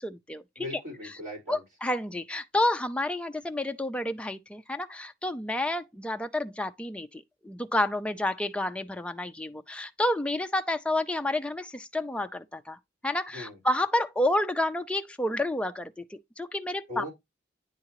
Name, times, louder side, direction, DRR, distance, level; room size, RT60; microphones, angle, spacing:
voice 1, 0.0-0.7 1.5-12.8 13.0-17.1, left 1 dB, 5° left, 0.4 m, -30 dB
voice 2, 0.6-1.6 13.3-13.6 16.9-17.1, left 1 dB, 40° right, 4.2 m, -38 dB
9.7 x 3.8 x 2.9 m
head